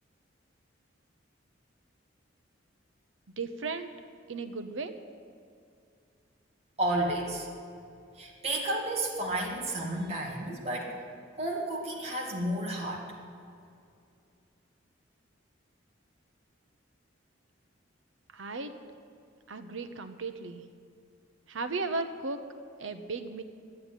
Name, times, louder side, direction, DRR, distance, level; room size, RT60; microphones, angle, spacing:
voice 1, 3.4-3.9 4.3-5.0 18.3-18.7 19.5-20.6 21.5-22.4 22.8-23.4, right 3 dB, 80° right, 9 dB, 0.8 m, -35 dB
voice 2, 6.8-7.5 8.1-11.0 11.3-13.1, right 1 dB, 30° right, -3 dB, 2.0 m, -32 dB
12.5 x 9.6 x 9.1 m, 2.5 s
head